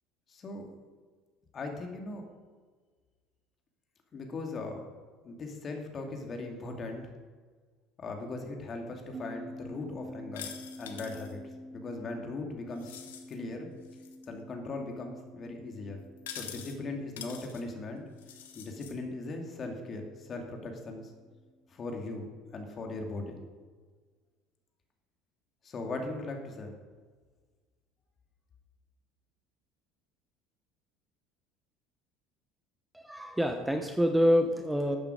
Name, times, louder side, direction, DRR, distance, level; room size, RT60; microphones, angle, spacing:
voice 1, 0.3-0.7 1.5-2.2 4.1-4.8 5.2-7.0 8.0-10.5 10.8-11.4 11.7-13.0 13.3-13.7 14.3-16.0 16.4-18.0 18.5-21.1 21.7-23.4 25.6-26.7, left 2 dB, 40° left, 3 dB, 2.5 m, -39 dB
sound 1, 9.1-21.9, left 1 dB, 35° right, 0.7 m, -49 dB
sound 2, 10.3-11.3 12.8-13.3 13.9-14.3 16.2-16.8 17.2-17.6 18.2-18.9, left 9 dB, 75° left, 1.1 m, -45 dB
voice 2, 32.9-35.0, equal, 5° right, 6 dB, 1.1 m, -26 dB
13.0 x 8.6 x 5.0 m, 1.5 s
hypercardioid pair, 65°, 0 cm